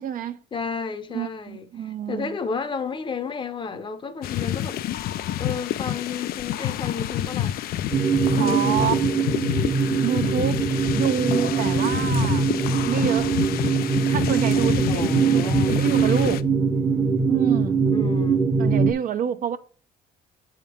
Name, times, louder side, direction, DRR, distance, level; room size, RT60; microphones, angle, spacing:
voice 1, 0.0-0.4 1.1-2.4 8.4-9.0 10.0-10.7 10.9-12.5 12.8-13.3 14.0-16.4 17.3-17.8 18.6-19.6, right 9 dB, 55° right, 0.5 m, -27 dB
voice 2, 0.5-4.8 5.4-7.6 8.4-9.0 14.9-15.8 17.9-18.4, left 5 dB, 30° left, 0.7 m, -32 dB
sound 1, 4.2-16.4, left 12 dB, 60° left, 0.4 m, -28 dB
sound 2, 7.9-18.9, right 5 dB, 5° right, 0.7 m, -22 dB
7.4 x 3.7 x 4.3 m
cardioid pair, 110°, 17 cm